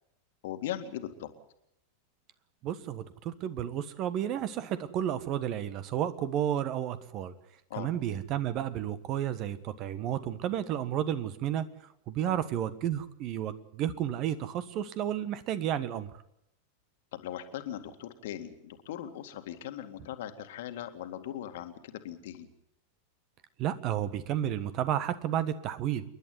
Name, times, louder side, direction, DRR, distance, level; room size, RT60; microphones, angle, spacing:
voice 1, 0.4-1.3 7.7-7.9 12.3-12.4 17.1-22.5, left 11 dB, 55° left, 8 dB, 2.0 m, -39 dB
voice 2, 2.6-7.3 7.8-11.7 12.1-16.1 23.6-26.0, right 10 dB, 40° right, 14 dB, 1.4 m, -32 dB
28.5 x 11.5 x 9.5 m, 0.78 s
figure-of-eight pair, 90°, 0 cm